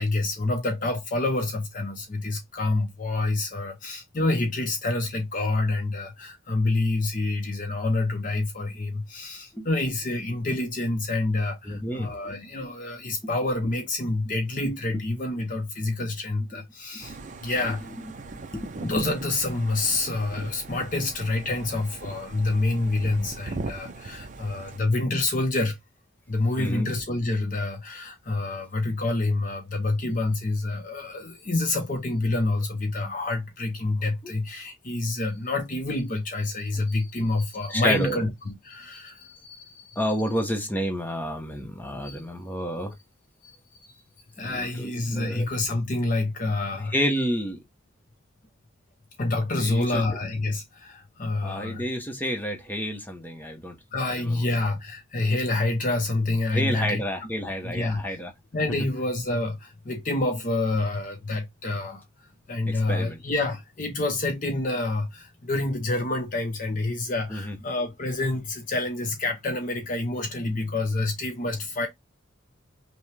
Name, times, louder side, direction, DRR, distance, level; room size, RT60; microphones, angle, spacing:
voice 1, 0.0-17.9 18.8-25.8 26.3-40.0 42.0-42.2 43.4-43.6 44.4-46.9 49.2-51.9 53.9-57.0 57.6-58.0 58.5-62.0 62.5-71.9, left 2 dB, 40° left, 0.7 m, -27 dB
voice 2, 11.6-12.1 13.2-13.3 14.9-15.0 16.5-16.6 16.9-17.0 18.3-18.7 26.6-26.9 34.2-34.3 37.7-38.2 40.0-42.9 44.4-45.4 46.9-47.6 49.6-50.0 51.4-53.8 54.1-54.5 56.5-58.3 62.7-63.2 67.3-67.6, equal, 10° left, 0.8 m, -30 dB
sound 1, 17.0-24.8, right 3 dB, 35° right, 0.5 m, -40 dB
5.6 x 2.1 x 3.2 m
head